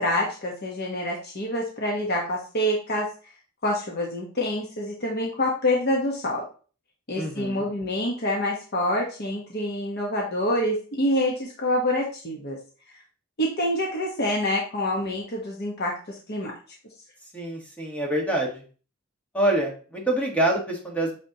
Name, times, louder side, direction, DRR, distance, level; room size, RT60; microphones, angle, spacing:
voice 1, 0.0-3.1 3.6-6.4 7.1-12.6 13.4-16.5, left 1 dB, 50° left, -2 dB, 1.3 m, -26 dB
voice 2, 7.2-7.6 17.3-18.6 19.3-21.2, right 1 dB, 5° left, -1 dB, 1.6 m, -26 dB
8.4 x 4.2 x 3.0 m, 0.38 s
head